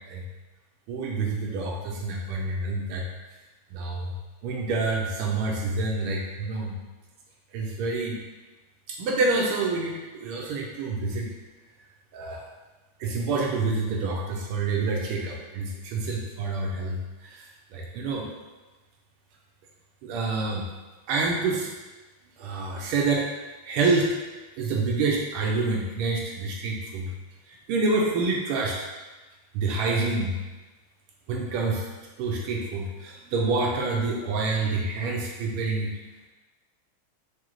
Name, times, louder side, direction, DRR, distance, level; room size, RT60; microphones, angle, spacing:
voice 1, 0.9-3.0 3.7-4.1 4.4-6.8 7.5-8.2 8.9-11.3 12.1-12.4 13.0-17.5 17.7-18.3 20.0-20.6 21.1-21.7 22.4-23.3 23.6-24.1 24.6-27.1 27.5-28.7 29.5-30.3 31.3-31.9 32.2-35.9, right 3 dB, 85° right, -2 dB, 1.5 m, -27 dB
4.9 x 2.7 x 3.0 m, 1.2 s
omnidirectional pair, 2.4 m